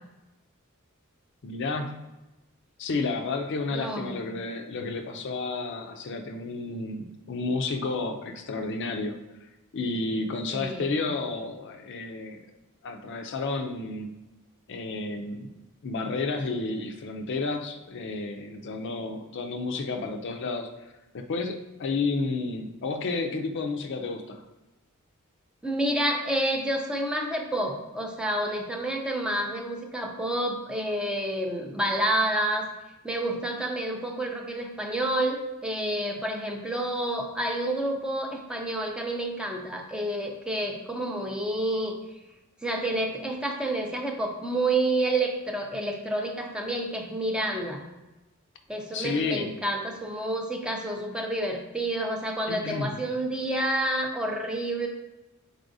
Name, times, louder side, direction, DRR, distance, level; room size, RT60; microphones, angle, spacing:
voice 1, 1.4-2.0 2.8-9.2 9.7-12.4 12.8-14.1 14.7-15.5 15.8-20.7 21.1-24.4 48.9-49.5 52.5-53.0, left 3 dB, 55° left, 5 dB, 0.5 m, -31 dB
voice 2, 3.7-4.3 10.5-11.2 25.6-32.7 33.0-42.0 42.6-47.8 48.7-54.9, right 1 dB, 5° right, 1 dB, 0.5 m, -29 dB
4.7 x 4.2 x 2.6 m, 1.0 s
head